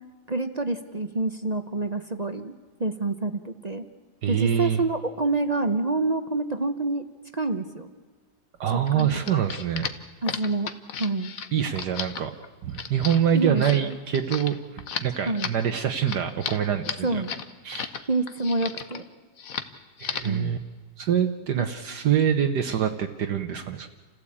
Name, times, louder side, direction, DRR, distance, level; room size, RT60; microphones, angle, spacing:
voice 1, 0.3-3.8 4.3-7.0 7.3-7.9 8.9-9.4 10.2-10.7 11.0-11.3 13.3-14.0 15.3-15.5 17.0-17.3 18.0-19.0 20.2-20.6 21.6-21.7, right 2 dB, 35° right, 9 dB, 0.6 m, -27 dB
voice 2, 4.2-4.8 8.6-9.9 11.5-12.3 12.6-17.2 17.6-17.9 20.0-20.6 21.0-23.9, right 9 dB, 70° right, 5 dB, 1.5 m, -25 dB
sound 1, 8.9-18.0 18.3-19.0 19.4-19.7 20.0-20.4, left 7 dB, 55° left, 1.4 m, -34 dB
28.5 x 15.5 x 8.6 m, 1.5 s
omnidirectional pair, 1.9 m